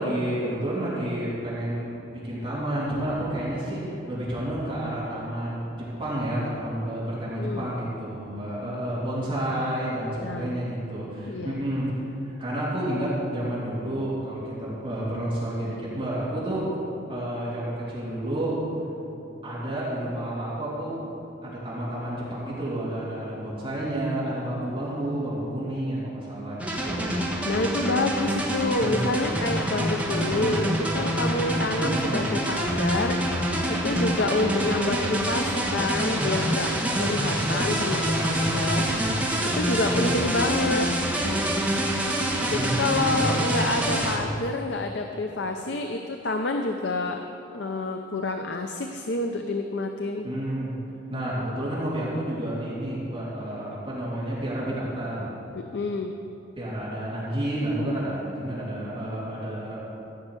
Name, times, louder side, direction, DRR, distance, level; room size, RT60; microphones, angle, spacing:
voice 1, 0.0-12.0 12.2-16.7 17.1-18.6 19.4-21.0 21.4-27.1 31.8-32.0 39.9-40.2 42.5-43.4 50.2-50.7 51.1-55.3 56.6-59.8, right 1 dB, 25° right, -9 dB, 2.8 m, -30 dB
voice 2, 7.4-7.7 10.2-10.6 11.3-11.6 27.4-36.7 37.0-38.9 39.5-40.9 42.5-47.3 47.5-50.3 55.5-56.1, left 2 dB, 60° left, 4 dB, 0.6 m, -28 dB
sound 1, 26.6-44.2, right 1 dB, 5° right, 1.3 m, -26 dB
14.5 x 5.8 x 8.2 m, 3.0 s
head